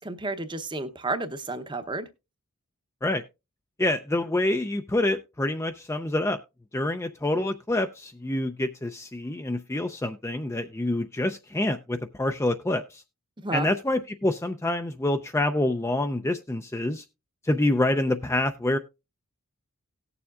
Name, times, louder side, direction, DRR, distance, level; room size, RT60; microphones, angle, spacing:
voice 1, 0.0-2.1 13.4-13.7, right 2 dB, 20° right, 10 dB, 0.7 m, -31 dB
voice 2, 3.8-6.4 6.7-13.0 13.5-17.0 17.4-18.8, left 1 dB, 10° left, 6 dB, 0.4 m, -27 dB
18.0 x 7.0 x 2.4 m, 0.26 s
head